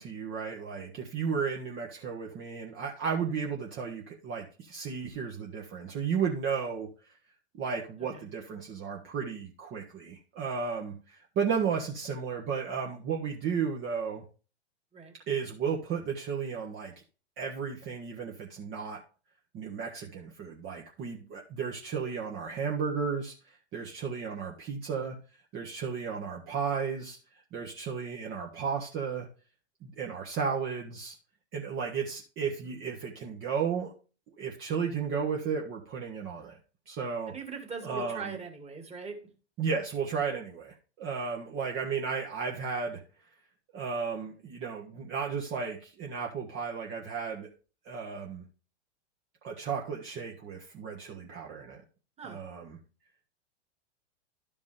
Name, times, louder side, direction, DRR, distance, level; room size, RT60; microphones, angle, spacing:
voice 1, 0.0-6.9 7.5-14.2 15.3-16.9 17.4-19.0 19.5-23.3 23.7-25.1 25.5-27.2 27.5-29.3 29.8-31.1 31.5-33.9 34.4-36.6 36.9-37.3 37.8-38.4 39.6-43.0 43.7-47.5 47.8-48.4 49.4-51.8 52.2-52.8, right 6 dB, 35° right, 0 dB, 1.4 m, -34 dB
voice 2, 37.3-39.2 52.2-52.4, right 5 dB, 20° right, 4 dB, 2.0 m, -41 dB
11.5 x 5.2 x 3.3 m, 0.35 s
hypercardioid pair, 110°, 35 cm